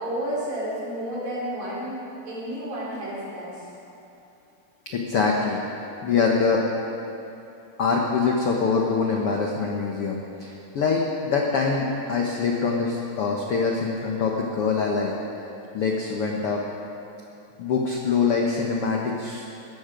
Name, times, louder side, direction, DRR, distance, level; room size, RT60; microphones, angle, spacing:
voice 1, 0.0-2.0 2.2-3.7, right 1 dB, 75° right, -7 dB, 5.9 m, -31 dB
voice 2, 4.9-5.6 6.0-6.6 7.8-15.1 15.7-16.6 17.6-19.5, left 5 dB, 80° left, -1 dB, 1.3 m, -24 dB
17.5 x 13.5 x 5.1 m, 2.9 s
omnidirectional pair, 4.3 m